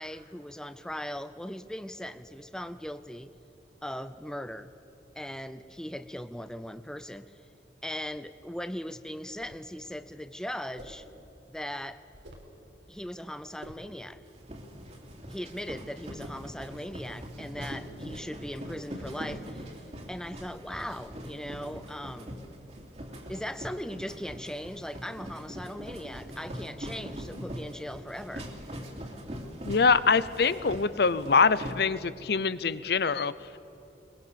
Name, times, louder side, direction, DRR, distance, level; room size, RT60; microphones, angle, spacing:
voice 1, 0.0-3.3 3.8-4.7 5.2-7.3 7.8-11.1 11.5-12.0 12.9-14.2 15.3-19.8 20.1-22.5 23.3-28.5, equal, 5° left, 12 dB, 0.6 m, -39 dB
sound 1, 9.2-9.7 10.8-11.1 12.1-12.6 13.6-13.9, equal, 85° right, 4.0 m, -48 dB
sound 2, 14.3-31.7, equal, 40° right, 3.0 m, -42 dB
voice 2, 29.7-33.3, left 5 dB, 60° left, 16 dB, 0.7 m, -24 dB
22.0 x 21.0 x 6.9 m, 2.9 s
head